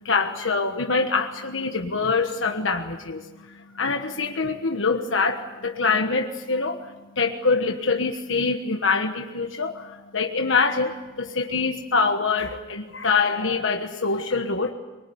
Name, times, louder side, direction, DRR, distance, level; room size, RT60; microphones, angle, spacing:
voice 1, 0.0-14.7, left 4 dB, 65° left, 4 dB, 1.4 m, -25 dB
24.0 x 23.0 x 9.5 m, 1.1 s
head